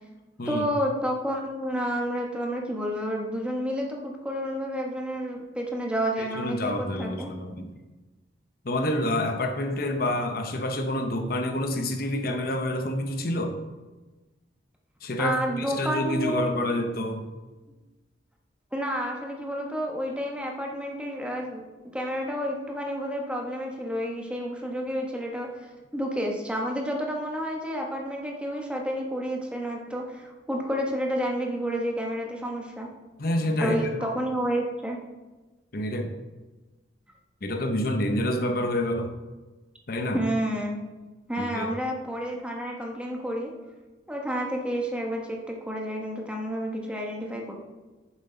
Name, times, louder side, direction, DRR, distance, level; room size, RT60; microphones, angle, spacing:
voice 1, 0.4-7.3 15.2-16.6 18.7-21.6 21.9-25.5 25.9-32.9 33.6-35.0 40.1-40.8 41.3-43.5 44.1-47.6, equal, 5° right, 0 dB, 1.1 m, -30 dB
voice 2, 6.2-7.8 8.6-13.6 15.0-17.2 33.2-34.1 35.7-36.1 37.4-39.1 39.9-40.2 41.4-41.7, left 1 dB, 55° left, 5 dB, 0.8 m, -28 dB
9.8 x 7.3 x 3.9 m, 1.2 s
head